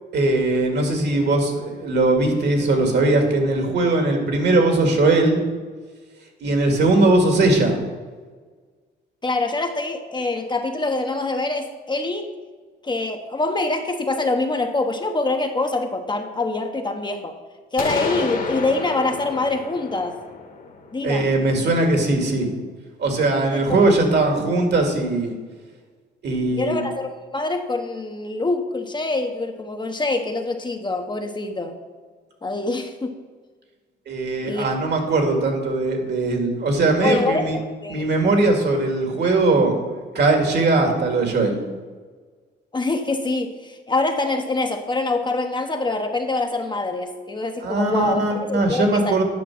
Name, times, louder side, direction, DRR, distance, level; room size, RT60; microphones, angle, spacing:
voice 1, 0.1-5.4 6.4-7.8 21.0-22.5 23.0-25.3 26.2-26.9 34.1-37.6 37.9-41.6 47.6-49.2, right 2 dB, 60° right, 3 dB, 2.1 m, -20 dB
voice 2, 9.2-12.3 12.8-17.3 17.7-20.2 20.9-21.3 23.7-23.9 26.5-31.8 32.4-33.2 34.4-34.7 37.0-38.1 42.7-49.2, left 2 dB, 25° left, 5 dB, 0.9 m, -25 dB
sound 1, 17.8-21.6, left 4 dB, 45° left, 1.4 m, -30 dB
9.4 x 5.7 x 5.9 m, 1.5 s
cardioid pair, 90°, 20 cm